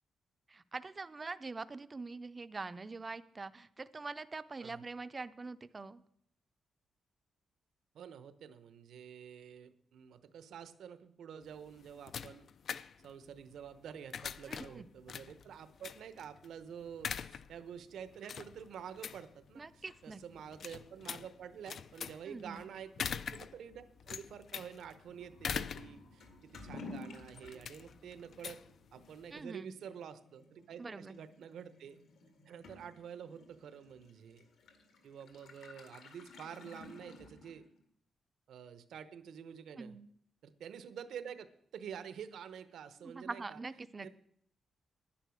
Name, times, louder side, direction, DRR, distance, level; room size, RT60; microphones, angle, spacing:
voice 1, 0.5-6.0 14.5-14.9 19.6-20.2 22.3-22.6 29.3-29.8 30.8-31.2 39.8-40.0 43.0-44.1, right 3 dB, 25° right, 13 dB, 0.5 m, -44 dB
voice 2, 7.9-28.6 28.9-32.0 32.5-34.4 35.0-37.6 38.5-40.0 40.4-41.5 41.7-43.6 44.0-44.1, right 8 dB, 80° right, 13 dB, 0.9 m, -49 dB
sound 1, 11.4-29.4, left 7 dB, 55° left, 0.4 m, -45 dB
sound 2, 24.6-27.6, left 1 dB, 90° left, 6.2 m, -63 dB
Toilet flush / Liquid, 26.2-37.8, left 2 dB, 75° left, 1.9 m, -53 dB
10.5 x 10.0 x 6.3 m, 0.68 s
wide cardioid pair, 155°, 0 cm